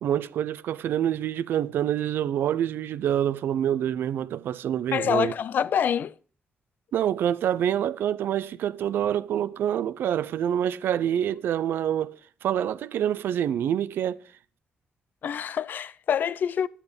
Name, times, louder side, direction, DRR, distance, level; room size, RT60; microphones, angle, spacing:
voice 1, 0.0-5.3 6.9-14.2, right 10 dB, 85° right, 0.5 m, -26 dB
voice 2, 4.9-6.1 15.2-16.7, left 8 dB, 60° left, 0.4 m, -26 dB
9.9 x 9.9 x 5.2 m
cardioid pair, 125°, 4 cm